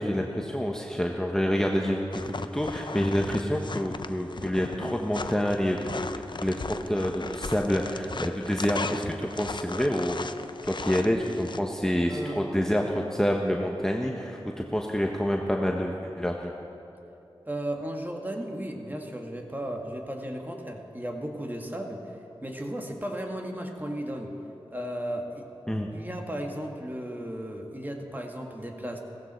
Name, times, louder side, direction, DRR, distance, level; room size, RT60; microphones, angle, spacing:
voice 1, 0.0-5.8 6.4-10.3 10.6-16.5 25.7-25.9, equal, 5° left, 0 dB, 1.1 m, -27 dB
sound 1, 2.1-11.6, left 4 dB, 50° left, 0.6 m, -37 dB
voice 2, 12.1-12.7 17.5-22.1 22.4-24.4 24.7-25.5 25.9-29.0, right 1 dB, 20° right, 2 dB, 1.9 m, -35 dB
16.5 x 15.0 x 4.5 m, 2.9 s
cardioid pair, 40°, 10 cm